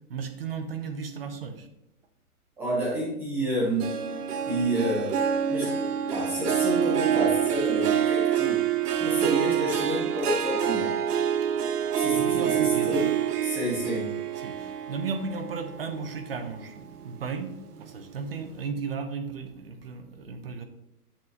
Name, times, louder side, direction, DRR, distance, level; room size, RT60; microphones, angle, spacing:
voice 1, 0.1-1.7 12.1-13.1 14.4-17.5 17.8-20.6, right 5 dB, 40° right, 8 dB, 0.7 m, -35 dB
voice 2, 2.6-3.9 4.5-8.6 9.0-11.0 11.9-13.1 13.4-14.1, right 1 dB, 5° right, -6 dB, 0.9 m, -30 dB
Harp, 3.8-16.5 16.9-17.3 17.8-17.9, right 9 dB, 90° right, 0.9 m, -27 dB
8.3 x 6.2 x 2.9 m, 0.86 s
hypercardioid pair, 175°, 45 cm